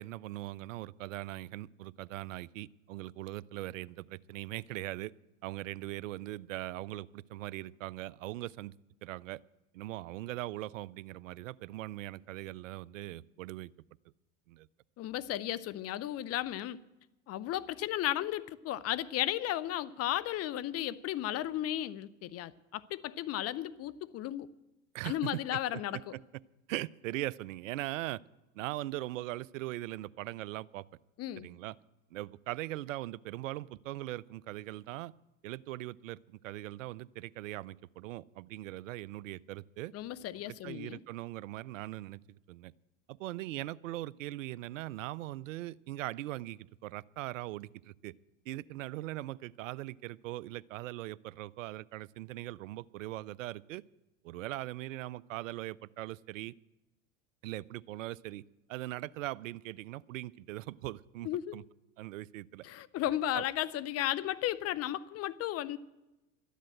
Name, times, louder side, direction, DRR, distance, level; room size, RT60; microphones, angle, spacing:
voice 1, 0.0-5.1 5.4-8.7 9.0-9.4 9.7-13.7 14.5-14.7 24.9-26.2 26.7-28.2 28.5-30.8 31.4-31.8 32.1-35.1 35.4-39.9 40.5-42.2 42.5-42.7 43.1-48.1 48.5-53.8 54.2-56.5 57.4-58.4 58.7-61.6 62.0-62.6 63.3-63.4, right 16 dB, 85° right, 0.5 m, -40 dB
voice 2, 15.0-16.8 17.3-24.5 25.0-26.0 31.2-31.5 39.9-41.0 61.2-61.6 62.6-65.8, left 13 dB, 40° left, 0.7 m, -34 dB
13.0 x 10.0 x 7.6 m
hypercardioid pair, 90°, 38 cm